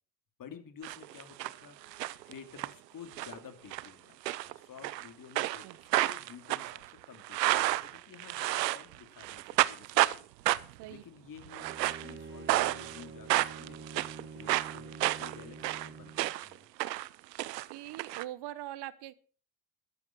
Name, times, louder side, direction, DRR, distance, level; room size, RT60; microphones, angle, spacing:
voice 1, 0.4-10.3 10.9-11.7 12.0-16.7, left 7 dB, 40° left, 8 dB, 2.8 m, -52 dB
sound 1, 0.8-1.6 1.8-2.7 3.1-3.4 3.7-3.9 4.3-5.1 5.4-8.9 9.2-10.2 10.5-10.8 11.5-12.1 12.5-13.0 13.3-16.5 16.8-18.2, right 16 dB, 90° right, 0.7 m, -30 dB
Bowed string instrument, 11.6-16.3, right 5 dB, 25° right, 3.1 m, -47 dB
voice 2, 17.7-19.1, right 14 dB, 55° right, 16 dB, 1.2 m, -42 dB
13.5 x 11.0 x 5.4 m, 0.41 s
hypercardioid pair, 70°, 48 cm